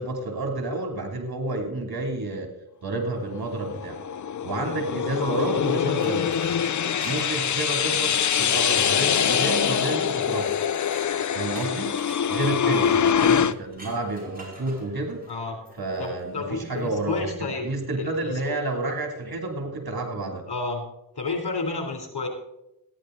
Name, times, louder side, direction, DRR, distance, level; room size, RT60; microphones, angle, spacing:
voice 1, 0.0-2.5 2.8-4.0 4.4-6.3 7.0-10.6 11.3-11.9 12.3-15.2 15.8-20.4, right 2 dB, 60° right, 3 dB, 3.0 m, -30 dB
sound 1, 3.4-13.5, left 8 dB, 45° left, 0.5 m, -24 dB
sound 2, 5.1-17.1, right 1 dB, 20° right, 5.3 m, -47 dB
voice 2, 5.2-5.7 12.6-13.5 15.3-15.6 16.0-17.7 18.0-18.3 20.5-20.8 21.1-22.3, left 3 dB, 60° left, 4 dB, 3.4 m, -31 dB
14.5 x 10.5 x 3.9 m, 0.85 s
cardioid pair, 45°, 42 cm